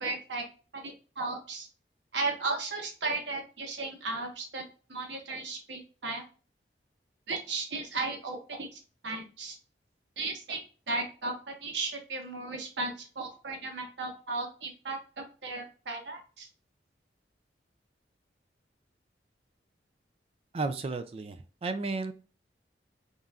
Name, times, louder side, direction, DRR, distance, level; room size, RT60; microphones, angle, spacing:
voice 1, 0.0-0.4 0.7-1.7 2.1-4.6 4.9-6.2 7.3-9.6 10.2-10.6 10.9-16.5, right 3 dB, 80° right, 2 dB, 1.2 m, -35 dB
voice 2, 20.5-21.4 21.6-22.1, right 3 dB, 35° right, 10 dB, 0.3 m, -32 dB
4.1 x 3.7 x 2.3 m, 0.36 s
head